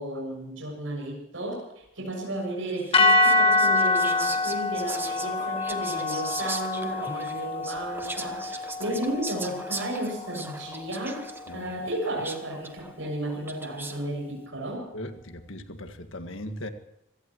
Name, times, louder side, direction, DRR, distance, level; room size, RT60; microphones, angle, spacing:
voice 1, 0.0-1.6 1.9-11.3 11.5-14.9, right 1 dB, 75° right, 6.8 m, -33 dB
Whispering, 2.8-14.1, right 3 dB, 10° right, 1.0 m, -39 dB
sound 1, 2.9-11.2, left 2 dB, 30° left, 1.3 m, -26 dB
voice 2, 14.9-16.7, left 1 dB, 75° left, 1.8 m, -38 dB
26.5 x 16.5 x 3.1 m
head